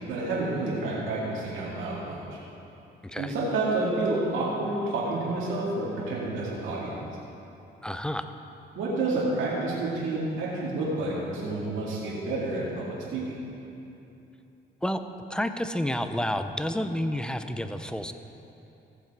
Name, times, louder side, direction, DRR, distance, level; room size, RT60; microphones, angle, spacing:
voice 1, 0.1-2.2 3.2-7.0 8.8-13.4, right 2 dB, 85° right, -5 dB, 2.1 m, -29 dB
voice 2, 3.0-3.3 7.8-8.3 14.8-15.0 15.3-18.1, equal, 5° left, 9 dB, 0.6 m, -30 dB
15.0 x 7.3 x 4.6 m, 2.9 s
cardioid pair, 90°, 20 cm